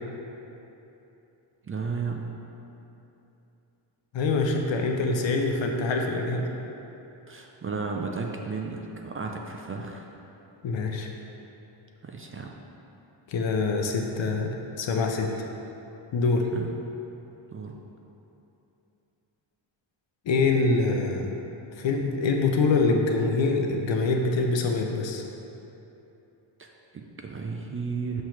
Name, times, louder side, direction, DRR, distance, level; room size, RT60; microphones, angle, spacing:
voice 1, 1.7-2.3 7.3-10.0 12.0-12.5 16.5-16.7 17.5-17.8 26.6-28.2, right 4 dB, 30° right, 1 dB, 0.4 m, -34 dB
voice 2, 4.1-6.5 10.6-11.1 13.3-15.3 16.1-16.5 20.3-21.3 21.8-25.2, left 3 dB, 65° left, 2 dB, 0.8 m, -25 dB
6.5 x 2.9 x 5.8 m, 2.9 s
cardioid pair, 85°, 49 cm